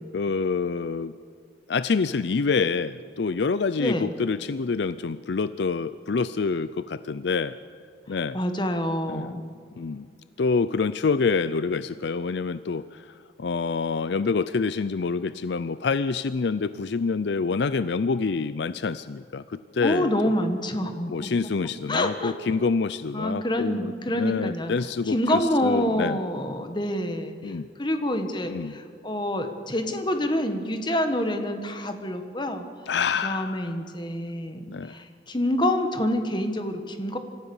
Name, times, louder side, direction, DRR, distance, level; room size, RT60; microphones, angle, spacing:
voice 1, 0.1-1.1 1.7-7.6 8.1-8.4 9.1-9.3 9.8-10.1 10.4-20.3 21.1-26.2 27.4-27.7 28.4-28.8 32.9-33.8 34.7-35.0, left 4 dB, 65° left, 14 dB, 0.5 m, -27 dB
voice 2, 3.8-4.1 8.3-9.4 19.8-21.3 21.9-22.3 23.1-24.7 25.1-27.5 27.8-32.6 33.2-37.2, left 1 dB, 25° left, 7 dB, 1.5 m, -27 dB
26.0 x 14.0 x 7.1 m, 2.3 s
head